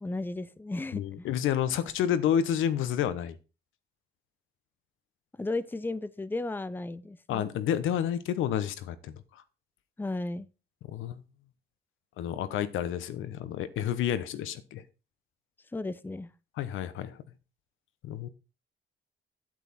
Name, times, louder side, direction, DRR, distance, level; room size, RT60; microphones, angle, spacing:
voice 1, 0.0-1.3 5.4-7.5 10.0-10.5 15.7-16.3, left 2 dB, 10° left, 16 dB, 0.6 m, -34 dB
voice 2, 0.9-3.4 7.3-9.4 10.9-11.2 12.2-14.8 16.6-17.2 18.0-18.3, left 9 dB, 85° left, 13 dB, 1.1 m, -30 dB
8.9 x 8.4 x 4.3 m, 0.31 s
cardioid pair, 90°, 20 cm